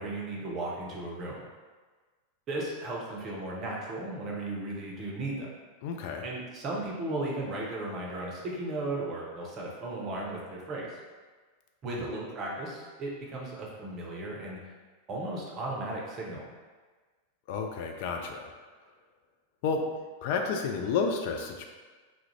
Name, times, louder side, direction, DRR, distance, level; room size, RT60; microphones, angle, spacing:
voice 1, 0.0-1.4 2.5-5.5 6.2-11.0 11.8-14.6 15.1-16.5, right 2 dB, 30° right, -3 dB, 0.6 m, -35 dB
voice 2, 5.8-6.2 11.9-12.1 17.5-18.5 19.6-19.8 20.2-21.7, left 5 dB, 50° left, 3 dB, 0.3 m, -31 dB
2.3 x 2.1 x 2.9 m, 1.4 s
figure-of-eight pair, 90°, 0 cm